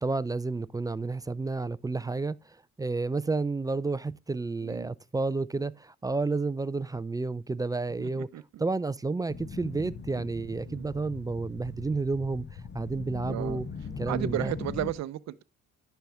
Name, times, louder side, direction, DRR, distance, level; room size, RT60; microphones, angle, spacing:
voice 1, 0.0-8.3 8.6-13.7 14.0-14.5, right 3 dB, 15° right, 0.3 m, -31 dB
voice 2, 4.6-4.9 8.0-8.6 10.1-10.3 10.7-10.9 13.3-13.6 14.1-15.4, right 13 dB, 60° right, 0.6 m, -34 dB
sound 1, 9.3-14.9, left 5 dB, 35° left, 1.2 m, -40 dB
10.5 x 5.6 x 3.4 m
cardioid pair, 90°, 30 cm